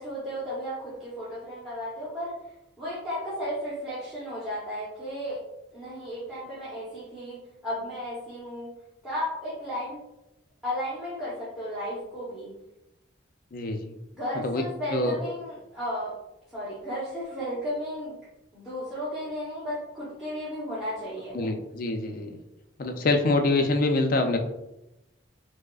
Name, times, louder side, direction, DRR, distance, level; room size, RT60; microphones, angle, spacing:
voice 1, 0.0-2.3 2.8-5.4 5.7-8.7 9.0-10.0 10.6-12.5 14.1-16.1 16.5-18.2 18.5-21.5, equal, ahead, -11 dB, 0.8 m, -34 dB
voice 2, 13.5-13.9 14.4-14.6 14.9-15.2 21.3-22.4 22.8-24.4, left 2 dB, 45° left, 5 dB, 0.4 m, -25 dB
4.7 x 2.0 x 2.3 m, 0.91 s
head